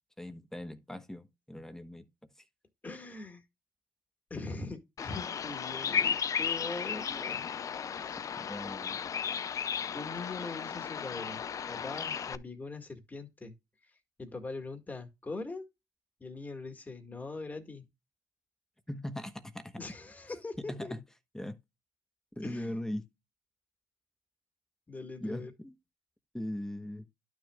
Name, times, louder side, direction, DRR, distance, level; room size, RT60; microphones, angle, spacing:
voice 1, 0.2-2.1 8.5-9.0 18.9-19.7 20.7-21.0 21.3-21.6 22.4-23.0 25.2-25.7 26.3-27.1, left 1 dB, 5° left, 1.1 m, -39 dB
voice 2, 2.8-3.4 4.3-7.5 8.0-8.3 9.9-11.4 11.7-13.6 14.2-15.7 16.2-17.9 19.8-20.9 22.4-22.8 24.9-25.5, left 3 dB, 20° left, 1.9 m, -42 dB
Bird vocalization bird call bird song, 5.0-12.4, left 7 dB, 50° left, 0.5 m, -34 dB
12.0 x 6.3 x 2.4 m
cardioid pair, 95°, 7 cm